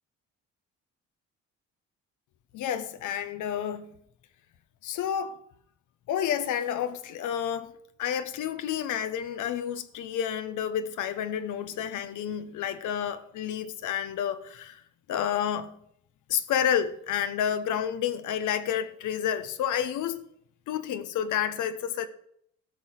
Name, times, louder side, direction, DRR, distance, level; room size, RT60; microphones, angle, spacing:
voice 1, 2.5-3.9 4.8-5.4 6.1-7.7 8.0-14.8 15.1-15.7 16.3-20.2 20.7-22.1, left 9 dB, 80° left, 0.9 m, -30 dB
14.0 x 5.6 x 6.5 m
cardioid pair, 90°, 30 cm